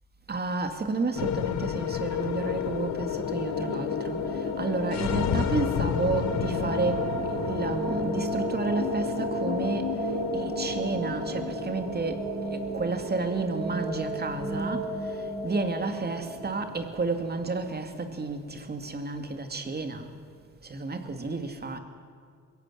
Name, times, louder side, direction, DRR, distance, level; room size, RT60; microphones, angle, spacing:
voice 1, 0.3-4.3 4.6-9.9 10.3-14.9 15.4-20.1 20.6-21.8, right 3 dB, 35° right, 2.5 m, -31 dB
sound 1, 1.2-19.5, left 9 dB, 65° left, 1.4 m, -32 dB
sound 2, 3.0-17.8, right 3 dB, 55° right, 7.8 m, -35 dB
22.0 x 16.5 x 9.4 m
cardioid pair, 90°, 30 cm